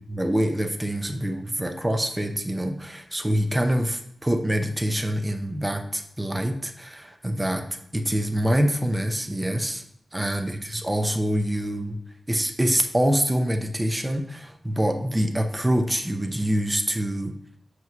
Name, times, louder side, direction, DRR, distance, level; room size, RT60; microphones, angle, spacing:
voice 1, 0.0-7.7 7.9-9.8 10.1-12.0 12.3-17.3, equal, 10° right, 6 dB, 0.6 m, -25 dB
8.0 x 3.1 x 5.8 m, 0.70 s
wide cardioid pair, 175°, 0 cm